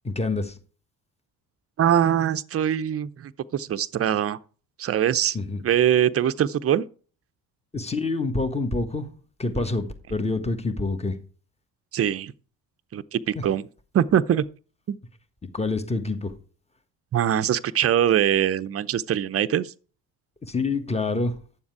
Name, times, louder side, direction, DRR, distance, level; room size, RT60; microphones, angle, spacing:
voice 1, 0.0-0.6 5.3-5.6 7.7-9.1 9.4-11.2 13.3-13.4 15.5-16.3 20.4-21.4, left 3 dB, 15° left, 1.4 m, -27 dB
voice 2, 1.8-4.4 4.8-5.4 5.6-6.8 11.9-12.3 12.9-13.7 13.9-14.4 14.9-15.0 17.1-19.7, right 10 dB, 35° right, 0.6 m, -22 dB
9.6 x 7.2 x 4.7 m
hypercardioid pair, 55°, 41 cm